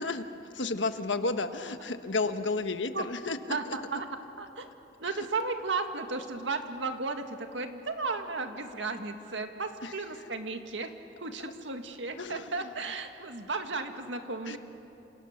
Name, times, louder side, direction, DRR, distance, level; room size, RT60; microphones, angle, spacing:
voice 1, 0.0-3.8 5.1-5.3 9.8-9.9 12.2-12.7 14.5-14.6, left 3 dB, 90° left, 8 dB, 1.3 m, -32 dB
voice 2, 3.5-4.1 4.4-4.7 5.0-10.9 11.2-14.6, right 3 dB, 85° right, 6 dB, 1.9 m, -34 dB
29.0 x 27.5 x 6.7 m, 2.9 s
head